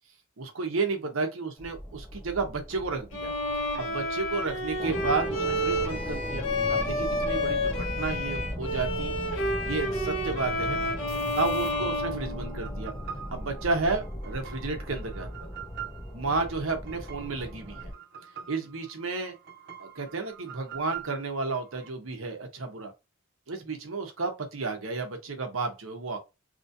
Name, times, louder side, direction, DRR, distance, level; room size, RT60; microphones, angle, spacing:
voice 1, 0.4-3.3 3.8-9.1 9.6-10.8 11.4-12.9 13.3-15.5 16.1-17.9 18.5-19.3 19.8-22.9 23.5-26.2, right 3 dB, 90° right, 0.9 m, -32 dB
sound 1, 1.6-17.9, equal, 15° left, 0.6 m, -38 dB
Bowed string instrument, 3.1-12.9, left 1 dB, 85° left, 1.0 m, -30 dB
sound 2, 11.1-21.9, right 8 dB, 55° right, 0.6 m, -45 dB
3.0 x 2.7 x 2.6 m
head